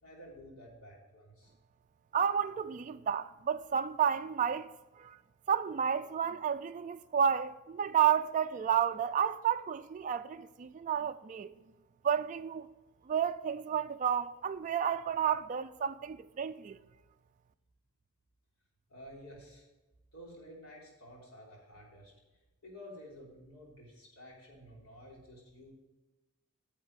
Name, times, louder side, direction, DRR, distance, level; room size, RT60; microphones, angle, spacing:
voice 1, 0.0-1.5 18.9-19.7 20.1-22.1 22.6-25.7, equal, 75° left, 3.4 m, -52 dB
voice 2, 2.1-4.7 5.0-5.2 5.5-11.5 12.0-12.7 13.1-16.8, right 8 dB, 35° right, 0.3 m, -31 dB
10.0 x 7.3 x 4.7 m
head